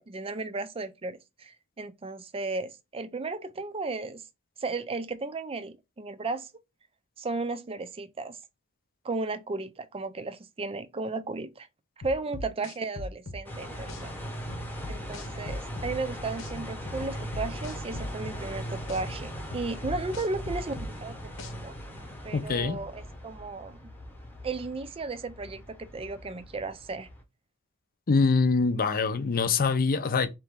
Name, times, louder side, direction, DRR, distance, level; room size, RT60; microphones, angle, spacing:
voice 1, 0.0-4.2 4.6-6.5 7.2-8.4 9.0-11.7 12.0-14.1 14.9-21.7 22.2-23.9 24.4-27.1, right 3 dB, 25° right, 0.5 m, -35 dB
sound 1, 12.0-13.4 13.9-14.0 14.5-15.9 16.4-16.5 16.9-18.4 18.9-19.0 19.5-20.9 21.4-21.5, left 1 dB, 75° left, 1.0 m, -39 dB
sound 2, 13.4-27.2, equal, 10° left, 1.0 m, -39 dB
voice 2, 22.3-22.8 28.1-30.3, left 4 dB, 45° left, 0.6 m, -24 dB
4.1 x 3.0 x 3.6 m
head